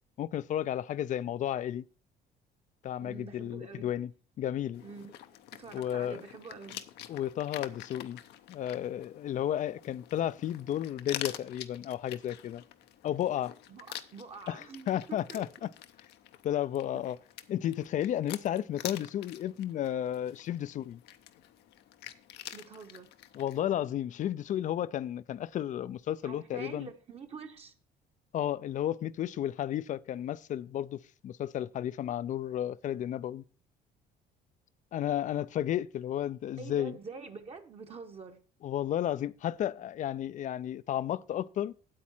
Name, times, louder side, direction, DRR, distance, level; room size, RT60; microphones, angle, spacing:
voice 1, 0.2-1.8 2.8-4.1 4.4-4.8 5.7-6.2 7.1-8.2 8.5-12.6 13.0-13.5 14.5-15.7 16.4-17.2 17.5-21.0 23.3-26.9 28.3-33.4 34.9-37.0 38.6-41.7, left 11 dB, 50° left, 0.4 m, -33 dB
voice 2, 3.0-3.9 4.8-5.1 5.5-6.8 13.7-15.4 22.5-23.1 26.2-27.7 36.6-38.4, right 5 dB, 35° right, 1.0 m, -46 dB
sound 1, 4.7-23.6, left 12 dB, 80° left, 0.7 m, -47 dB
8.6 x 8.3 x 4.3 m
cardioid pair, 110°, 17 cm